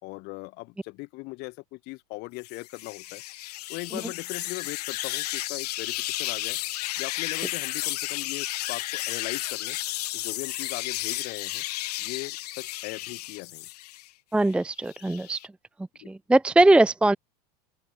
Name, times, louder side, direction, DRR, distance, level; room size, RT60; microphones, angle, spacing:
voice 1, 0.0-3.2 3.7-6.6 7.0-9.8 10.1-11.6 12.0-13.7 16.0-16.1, left 25 dB, 55° left, 4.5 m, -39 dB
sound 1, 2.4-14.1 14.5-15.5, left 17 dB, 75° left, 1.0 m, -33 dB
voice 2, 14.3-15.4 16.0-17.2, right 2 dB, 5° right, 0.6 m, -20 dB
open air
hypercardioid pair, 110°, 20 cm